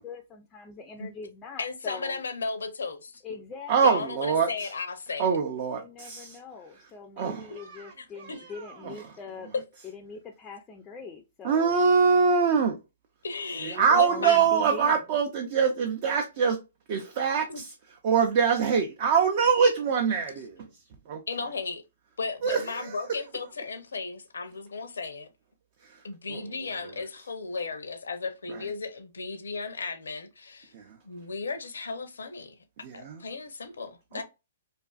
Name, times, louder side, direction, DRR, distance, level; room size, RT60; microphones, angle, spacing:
voice 1, 0.0-2.2 3.2-3.7 4.2-4.6 5.7-9.5 9.8-11.8 13.5-15.0, left 5 dB, 20° left, 0.3 m, -42 dB
voice 2, 1.6-3.2 3.8-5.3 8.0-8.4 13.2-14.4 17.5-17.6 21.3-21.8 22.2-25.3 26.0-30.7 31.1-32.5 32.9-34.2, left 4 dB, 90° left, 0.5 m, -35 dB
voice 3, 3.7-4.7 5.2-6.4 7.2-9.0 11.4-12.8 13.6-16.6 16.9-17.7 18.0-20.7 21.1-21.2 22.4-23.0 25.8-26.0 26.3-26.9 28.5-28.7 30.7-31.0 32.8-33.2 34.1-34.2, right 6 dB, 45° right, 0.4 m, -25 dB
2.4 x 2.4 x 2.3 m
hypercardioid pair, 145°, 0 cm